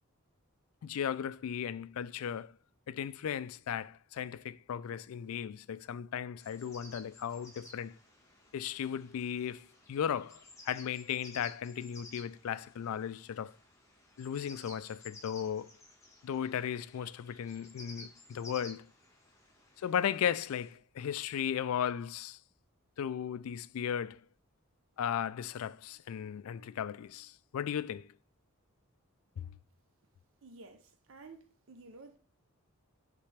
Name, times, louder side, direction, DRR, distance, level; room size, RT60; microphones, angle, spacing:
voice 1, 0.8-2.5 2.9-7.9 8.5-13.5 14.2-15.7 16.2-18.9 19.8-22.4 23.0-24.2 25.0-28.1 29.4-29.5, left 8 dB, 75° left, 0.3 m, -36 dB
sound 1, 6.4-20.7, left 2 dB, 15° left, 1.4 m, -55 dB
voice 2, 30.4-32.2, right 3 dB, 60° right, 0.6 m, -53 dB
9.9 x 3.3 x 3.3 m
head